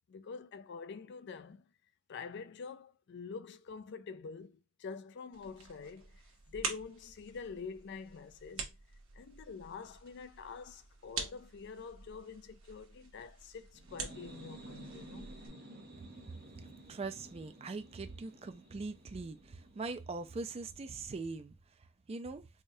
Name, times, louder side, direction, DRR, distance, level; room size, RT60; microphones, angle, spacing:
voice 1, 0.1-1.6 2.1-6.1 6.5-8.8 9.2-15.3, left 5 dB, 55° left, 0.4 m, -46 dB
sound 1, 5.3-15.5, right 5 dB, 70° right, 1.0 m, -46 dB
sound 2, 13.7-21.3, right 2 dB, 50° right, 0.9 m, -53 dB
voice 2, 16.6-21.5 22.1-22.4, right 3 dB, 30° right, 0.3 m, -42 dB
4.8 x 2.3 x 2.6 m
head